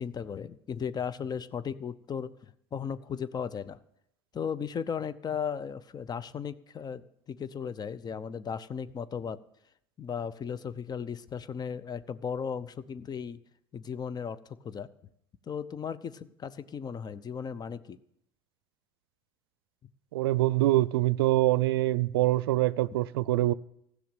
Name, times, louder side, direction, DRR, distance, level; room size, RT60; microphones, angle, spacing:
voice 1, 0.0-2.3 2.7-3.8 4.3-9.4 10.0-13.4 13.7-14.9 15.5-18.0, left 7 dB, 35° left, 0.8 m, -36 dB
voice 2, 20.1-23.5, right 16 dB, 80° right, 0.4 m, -25 dB
15.0 x 6.4 x 8.9 m
hypercardioid pair, 75°, 12 cm